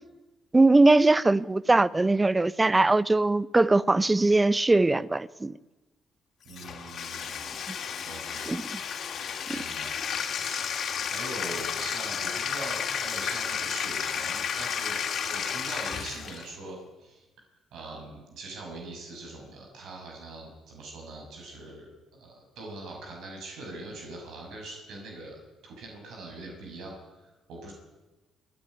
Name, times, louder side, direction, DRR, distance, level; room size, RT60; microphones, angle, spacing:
voice 1, 0.5-5.6 8.5-8.8, right 2 dB, 20° right, 0.7 m, -21 dB
voice 2, 6.4-7.6 8.0-8.5 9.5-9.9 10.4-10.7 11.0-15.0 15.2-17.2 17.7-27.0 27.2-27.7, right 2 dB, 80° right, 6.2 m, -42 dB
Bathtub (filling or washing), 6.5-16.5, left 7 dB, 65° left, 2.9 m, -32 dB
27.5 x 9.9 x 9.6 m
cardioid pair, 90°, 0 cm